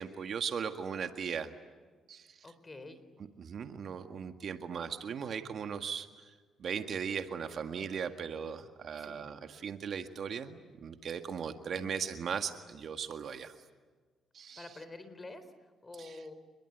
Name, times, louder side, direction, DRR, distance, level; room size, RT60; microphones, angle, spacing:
voice 1, 0.0-1.5 2.1-2.3 3.4-6.1 6.6-13.5 14.3-14.6 16.0-16.1, right 7 dB, 55° right, 7 dB, 1.8 m, -38 dB
voice 2, 2.4-3.0 9.0-9.3 11.6-12.0 14.6-16.3, left 2 dB, 25° left, 12 dB, 4.0 m, -48 dB
29.0 x 22.0 x 9.3 m, 1.4 s
cardioid pair, 90°, 0 cm